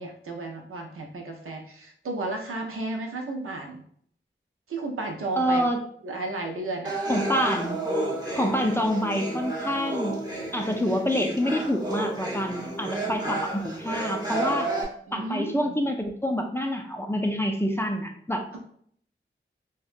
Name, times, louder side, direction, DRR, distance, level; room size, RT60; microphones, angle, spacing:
voice 1, 0.0-3.8 4.7-5.7 6.0-7.0 12.9-13.4 15.1-15.8, right 2 dB, 90° right, 1 dB, 0.5 m, -33 dB
voice 2, 5.4-5.8 7.1-7.8 8.4-10.2 10.5-14.8 15.1-18.6, equal, 10° left, 3 dB, 0.4 m, -27 dB
sound 1, 6.9-14.8, right 2 dB, 20° right, 0.7 m, -31 dB
2.7 x 2.2 x 2.4 m, 0.64 s
wide cardioid pair, 55°, 21 cm